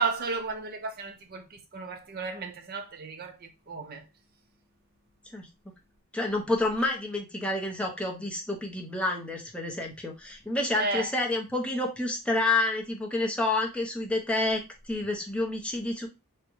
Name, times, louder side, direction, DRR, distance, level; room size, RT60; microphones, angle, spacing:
voice 1, 0.0-4.1 10.8-11.1, right 4 dB, 45° right, 0.6 m, -33 dB
voice 2, 6.1-16.1, left 2 dB, 5° left, 0.5 m, -29 dB
3.4 x 2.0 x 3.0 m
head